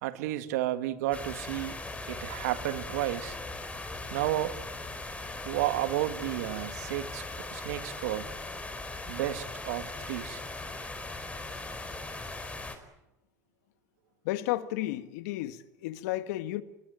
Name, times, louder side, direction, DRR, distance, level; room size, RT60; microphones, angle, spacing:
voice 1, 0.0-1.8 2.1-3.4 4.1-4.6 5.5-8.3 9.1-10.4, right 14 dB, 80° right, 1.9 m, -32 dB
sound 1, 1.1-12.8, left 2 dB, 15° left, 4.9 m, -39 dB
voice 2, 14.2-16.6, left 15 dB, 75° left, 1.6 m, -33 dB
24.5 x 21.5 x 9.1 m
hypercardioid pair, 80°, 9 cm